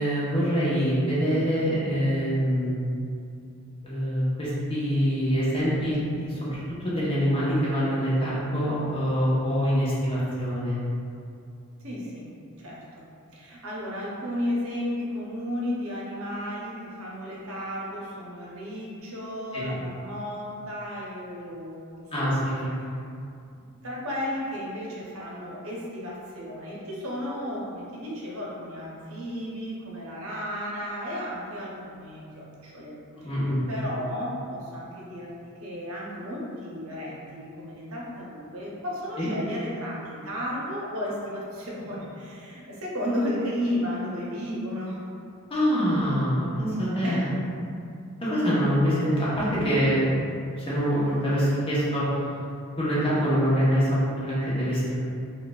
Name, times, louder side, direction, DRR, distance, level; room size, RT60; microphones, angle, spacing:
voice 1, 0.0-2.8 3.8-10.8 19.5-19.6 22.1-22.7 33.2-33.6 39.2-39.3 45.5-47.3 48.2-50.1 50.6-52.2 52.8-55.0, equal, 25° left, -9 dB, 0.9 m, -25 dB
voice 2, 11.8-12.3 12.6-12.8 13.3-22.4 23.8-33.0 33.2-33.3 33.7-45.0 47.0-47.3, left 1 dB, 65° right, -5 dB, 0.7 m, -33 dB
4.5 x 2.2 x 2.3 m, 2.5 s
head